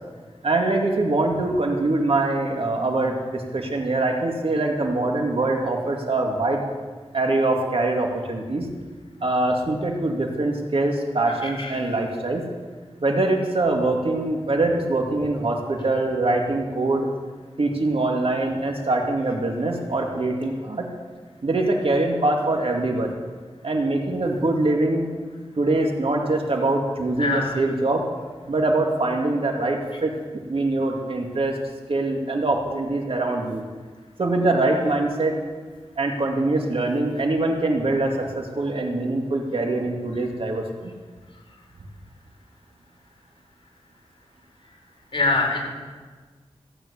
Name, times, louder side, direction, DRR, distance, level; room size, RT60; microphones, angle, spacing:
voice 1, 0.4-6.6 7.1-8.7 9.2-12.4 13.0-17.1 17.6-20.9 21.4-23.1 23.6-25.1 25.6-28.1 28.5-30.2 30.5-31.6 31.9-33.6 34.2-35.4 36.0-41.0, right 2 dB, 60° right, 1 dB, 2.3 m, -23 dB
voice 2, 27.2-27.6 45.1-45.6, left 3 dB, 50° left, 0 dB, 4.4 m, -23 dB
16.0 x 9.1 x 8.4 m, 1.4 s
wide cardioid pair, 75°, 11 cm